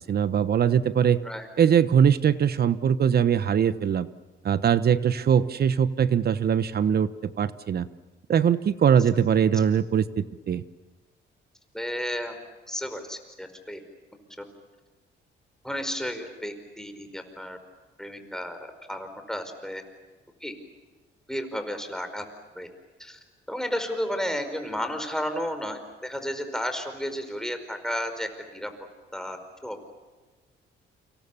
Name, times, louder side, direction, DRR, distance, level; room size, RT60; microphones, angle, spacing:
voice 1, 0.1-1.2 1.6-4.1 4.4-7.1 7.4-7.9 8.3-10.6, right 8 dB, 50° right, 15 dB, 1.1 m, -21 dB
voice 2, 11.7-12.3 12.7-13.8 15.6-17.6 18.0-18.6 18.9-19.8 20.4-20.5 21.3-22.2 22.5-22.7 23.0-23.2 23.5-28.7 29.1-29.9, equal, 5° left, 7 dB, 4.9 m, -32 dB
29.5 x 26.0 x 7.1 m, 1.3 s
cardioid pair, 90°, 20 cm